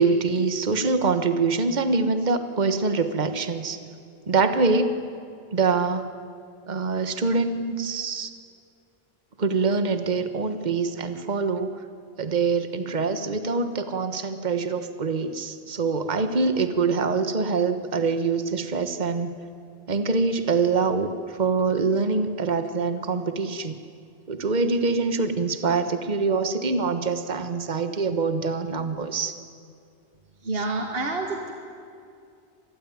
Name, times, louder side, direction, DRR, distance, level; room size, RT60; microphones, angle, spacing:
voice 1, 0.0-3.8 4.3-5.0 5.5-6.1 6.7-8.3 9.4-11.8 12.2-19.3 19.9-23.8 24.3-29.3, right 4 dB, 45° right, 9 dB, 1.4 m, -24 dB
voice 2, 30.4-31.5, right 2 dB, 70° right, 3 dB, 2.1 m, -28 dB
26.5 x 20.0 x 9.5 m, 2.4 s
omnidirectional pair, 1.0 m